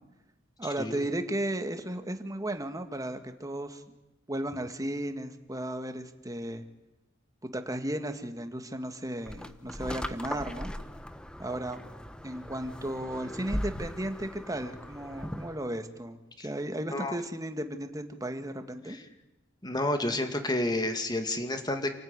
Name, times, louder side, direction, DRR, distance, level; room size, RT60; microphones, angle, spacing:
voice 1, 0.6-3.8 4.3-6.6 7.4-10.7 11.4-11.8 12.2-19.0, right 1 dB, 20° right, 7 dB, 1.7 m, -35 dB
sound 1, 9.3-15.6, equal, 5° left, 1.0 m, -39 dB
voice 2, 19.6-21.9, left 1 dB, 20° left, 7 dB, 2.3 m, -30 dB
28.5 x 15.0 x 9.7 m, 1.0 s
head